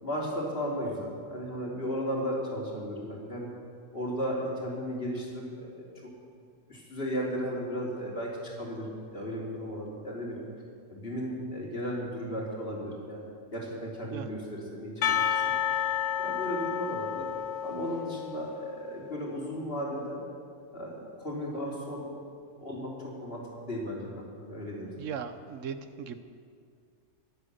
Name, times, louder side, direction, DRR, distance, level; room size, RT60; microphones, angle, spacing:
voice 1, 0.0-3.5 3.9-5.8 6.7-10.4 10.9-15.4 15.7-15.8 16.2-17.2 17.6-20.2 20.7-22.1 22.6-24.9, equal, 50° left, -3 dB, 3.3 m, -35 dB
Percussion, 15.0-18.9, left 9 dB, 80° left, 1.1 m, -30 dB
voice 2, 25.0-26.2, right 7 dB, 80° right, 10 dB, 1.2 m, -38 dB
23.5 x 8.1 x 6.6 m, 2.2 s
omnidirectional pair, 1.3 m